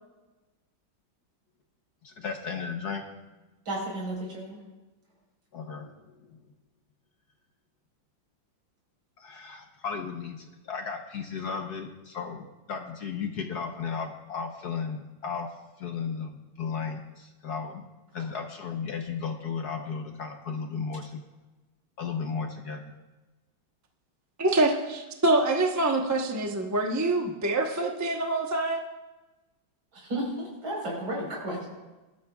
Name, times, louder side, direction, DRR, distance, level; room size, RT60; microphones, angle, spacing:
voice 1, 2.0-3.0 5.5-6.4 9.2-15.5 15.8-17.8 18.1-21.2 22.0-22.8, left 5 dB, 60° left, 4 dB, 1.2 m, -35 dB
voice 2, 3.7-4.6 30.0-31.7, right 1 dB, 70° right, -2 dB, 5.2 m, -33 dB
voice 3, 24.4-28.8, right 2 dB, 20° right, 2 dB, 0.5 m, -25 dB
23.0 x 12.5 x 2.4 m, 1.1 s
omnidirectional pair, 2.3 m